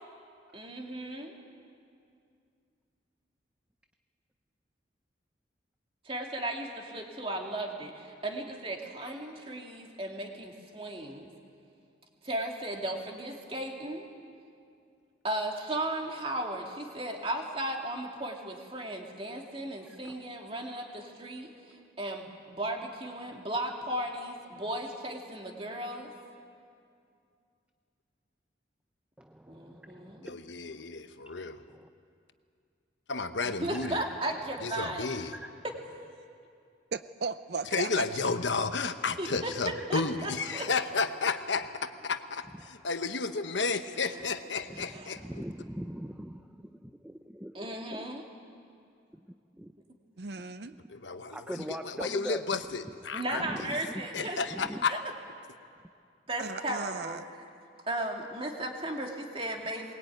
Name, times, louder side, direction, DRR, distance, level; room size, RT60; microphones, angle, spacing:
voice 1, 0.5-1.3 6.1-11.3 12.2-14.1 15.2-21.5 22.0-26.1 29.5-30.2 33.4-35.1 35.6-35.7 39.2-40.7 44.1-44.2 44.8-45.2 47.5-48.2 53.1-54.4 54.9-55.0 56.3-57.2 57.9-59.9, right 1 dB, 30° right, 1 dB, 2.5 m, -36 dB
voice 2, 19.8-20.1 29.2-30.3 31.3-31.9 33.8-34.0 35.3-35.5 39.8-39.9 42.6-42.9 44.7-48.1 49.6-49.7 51.3-52.6 53.5-54.8, equal, 5° right, 6 dB, 0.5 m, -42 dB
voice 3, 30.2-31.6 33.1-34.0 34.6-35.4 37.7-45.2 50.9-53.4 54.1-54.9, left 4 dB, 75° left, 9 dB, 1.0 m, -32 dB
voice 4, 36.9-38.0 50.2-50.7 56.4-57.2, right 4 dB, 60° right, 12 dB, 0.6 m, -36 dB
22.0 x 20.0 x 9.2 m, 2.4 s
head